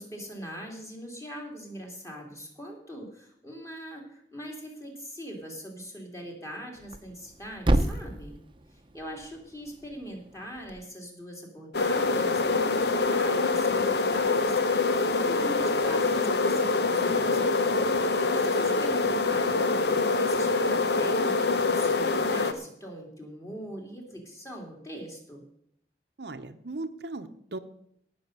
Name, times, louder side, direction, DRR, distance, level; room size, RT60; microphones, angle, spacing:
voice 1, 0.0-8.4 8.7-17.6 18.3-25.4, equal, 15° left, 0 dB, 3.1 m, -42 dB
Thump thud, 6.7-10.8, right 1 dB, 30° right, 0.8 m, -31 dB
sound 1, 11.7-22.5, left 3 dB, 70° left, 1.0 m, -25 dB
voice 2, 26.2-27.6, right 2 dB, 70° right, 8 dB, 0.9 m, -37 dB
17.5 x 6.6 x 6.7 m, 0.72 s
head